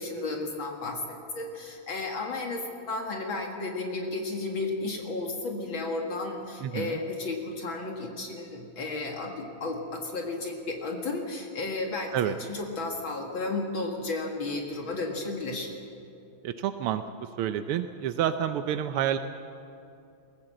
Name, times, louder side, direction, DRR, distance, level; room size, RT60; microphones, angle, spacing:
voice 1, 0.0-15.7, left 3 dB, 65° left, 1 dB, 2.6 m, -33 dB
voice 2, 6.6-7.0 12.1-12.3 16.4-17.0 17.4-19.2, right 10 dB, 90° right, 9 dB, 1.6 m, -28 dB
22.0 x 17.5 x 7.7 m, 2.7 s
omnidirectional pair, 2.4 m